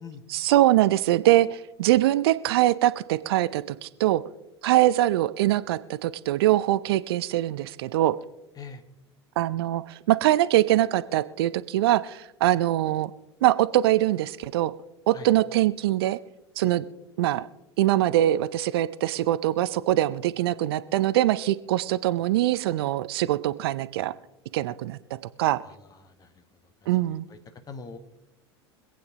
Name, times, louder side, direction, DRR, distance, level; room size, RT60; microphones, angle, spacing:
voice 1, 0.3-4.2 4.6-8.2 9.4-13.1 13.4-14.7 15.1-16.2 16.6-16.8 17.2-17.5 17.8-24.1 24.5-25.0 25.4-25.6 26.9-27.3, right 14 dB, 60° right, 15 dB, 0.5 m, -23 dB
voice 2, 25.6-26.4 27.0-27.4 27.6-28.0, left 4 dB, 25° left, 9 dB, 1.3 m, -43 dB
25.5 x 8.7 x 2.9 m, 0.96 s
figure-of-eight pair, 80°, 14 cm